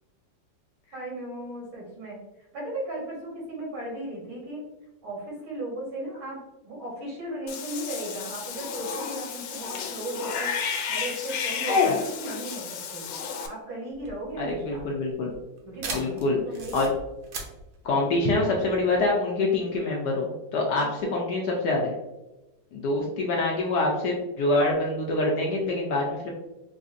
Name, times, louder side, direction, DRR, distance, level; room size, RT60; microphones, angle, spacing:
voice 1, 0.9-2.2 2.5-4.7 5.0-6.4 6.6-13.1 13.5-14.9 15.6-16.8 20.7-21.3 23.0-23.4, right 1 dB, 80° right, -4 dB, 2.2 m, -36 dB
Cat / Bathtub (filling or washing), 7.5-13.5, left 5 dB, 90° left, 1.4 m, -30 dB
sound 1, 13.9-19.1, right 3 dB, 65° right, 1.1 m, -39 dB
voice 2, 14.4-15.3 15.9-16.4 16.7-16.9 17.8-21.9 22.7-26.3, left 2 dB, 70° left, -2 dB, 1.0 m, -25 dB
4.8 x 2.4 x 2.5 m, 1.0 s
omnidirectional pair, 2.2 m